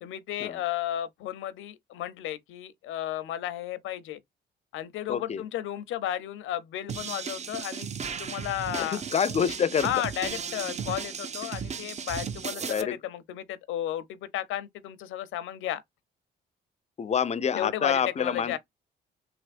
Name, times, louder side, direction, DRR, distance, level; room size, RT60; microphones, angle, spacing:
voice 1, 0.0-4.2 4.7-7.9 8.2-9.0 9.8-15.8 17.5-18.6, left 12 dB, 85° left, 0.6 m, -33 dB
voice 2, 5.1-5.4 8.8-9.9 12.6-13.0 17.0-18.6, left 7 dB, 35° left, 0.4 m, -27 dB
sound 1, 6.9-12.8, right 6 dB, 35° right, 0.5 m, -35 dB
3.4 x 3.0 x 2.4 m
cardioid pair, 90°, 20 cm